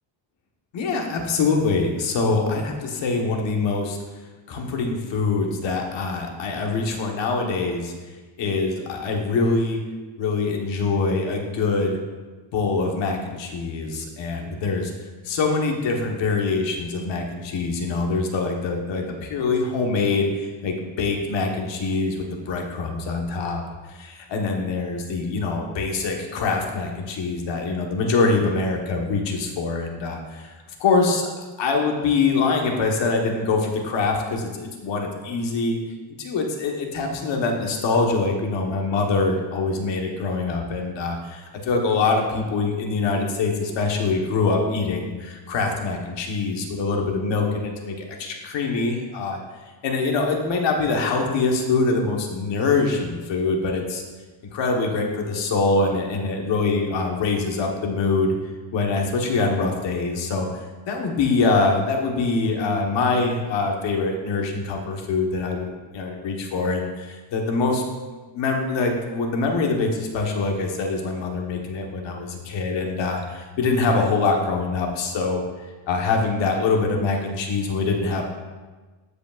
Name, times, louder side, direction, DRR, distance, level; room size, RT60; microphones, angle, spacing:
voice 1, 0.7-4.0 4.5-7.9 8.4-9.8 10.2-12.0 12.5-14.9 15.2-23.6 24.0-30.5 30.8-31.3 31.6-35.8 36.2-49.4 49.8-54.0 54.4-58.3 58.7-60.5 60.9-67.8 68.3-75.4 75.9-78.2, left 3 dB, 70° left, 1 dB, 1.3 m, -24 dB
14.5 x 5.1 x 2.4 m, 1.3 s
cardioid pair, 150°, 46 cm